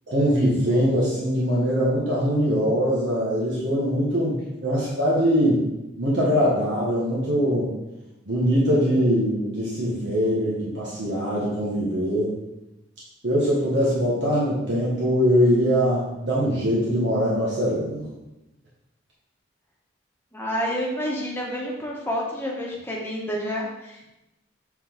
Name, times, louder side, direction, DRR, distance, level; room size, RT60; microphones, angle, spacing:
voice 1, 0.1-5.6 6.0-7.7 8.3-12.4 13.2-18.1, equal, 70° right, -6 dB, 1.5 m, -22 dB
voice 2, 20.3-24.1, equal, 10° left, -3 dB, 1.2 m, -29 dB
7.8 x 4.0 x 3.7 m, 0.94 s
head